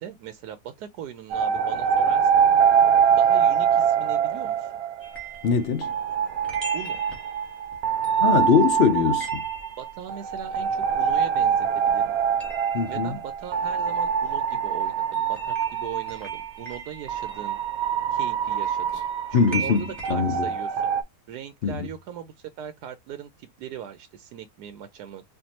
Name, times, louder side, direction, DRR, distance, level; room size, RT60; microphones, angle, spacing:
voice 1, 0.0-2.4 3.1-4.7 6.7-7.1 9.8-12.1 12.9-17.6 18.1-19.0 19.3-20.8 21.3-25.2, right 9 dB, 90° right, 1.2 m, -39 dB
sound 1, 1.3-5.4 5.8-16.4 17.1-21.0, right 8 dB, 70° right, 1.0 m, -24 dB
sound 2, 5.0-11.6 11.9-20.1, right 4 dB, ahead, 1.4 m, -40 dB
voice 2, 5.4-6.0 8.2-9.5 12.7-13.2 19.3-20.5 21.6-21.9, left 6 dB, 75° left, 0.5 m, -22 dB
4.5 x 2.7 x 2.8 m
omnidirectional pair, 1.7 m